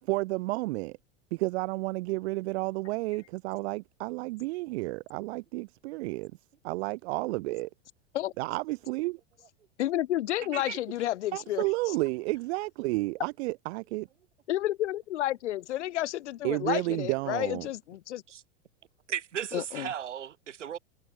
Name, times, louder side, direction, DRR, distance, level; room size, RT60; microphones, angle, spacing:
voice 1, 0.0-1.0 1.3-6.3 6.6-7.7 8.4-9.2 11.3-14.1 16.4-17.7, right 22 dB, 60° right, 6.3 m, -31 dB
voice 2, 9.8-11.9 14.5-18.2 19.5-19.9, left 13 dB, 70° left, 4.8 m, -31 dB
voice 3, 19.1-20.8, right 9 dB, 80° right, 3.2 m, -36 dB
hypercardioid pair, 90°, 36 cm